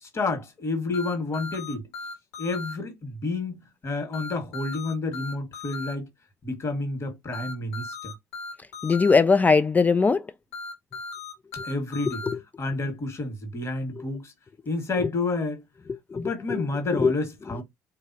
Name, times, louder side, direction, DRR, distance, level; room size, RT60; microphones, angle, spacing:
voice 1, 0.0-1.9 2.4-6.1 6.4-8.1 11.6-12.2 12.6-14.3 14.7-15.6 16.1-17.6, left 3 dB, 35° left, 1.6 m, -30 dB
sound 1, 0.9-2.7 4.1-5.9 7.3-9.1 10.5-12.3, left 3 dB, 70° left, 1.6 m, -37 dB
voice 2, 8.8-10.2 12.3-12.4 16.1-16.6 17.0-17.1, left 4 dB, 20° left, 0.3 m, -20 dB
3.7 x 2.7 x 2.7 m
figure-of-eight pair, 55°, 8 cm